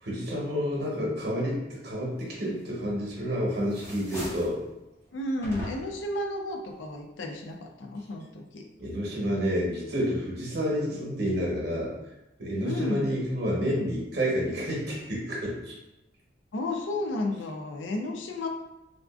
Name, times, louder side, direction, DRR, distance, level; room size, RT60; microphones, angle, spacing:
voice 1, 0.0-4.6 8.8-11.9 12.4-15.7, equal, 60° right, -4 dB, 1.0 m, -29 dB
sound 1, 2.8-3.3 3.6-4.6 5.4-6.1, equal, 15° left, 0.7 m, -39 dB
voice 2, 5.1-8.7 12.6-13.1 16.5-18.5, left 2 dB, 85° left, 3 dB, 0.5 m, -32 dB
3.5 x 2.4 x 2.4 m, 0.93 s
head